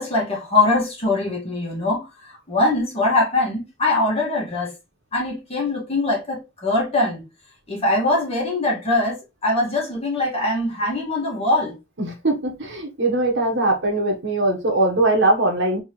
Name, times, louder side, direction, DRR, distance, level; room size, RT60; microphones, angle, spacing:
voice 1, 0.0-4.7 5.1-7.2 7.7-11.8, left 2 dB, 30° left, 2.1 m, -22 dB
voice 2, 12.0-15.8, right 2 dB, 60° right, 1.4 m, -21 dB
4.4 x 3.3 x 3.2 m
head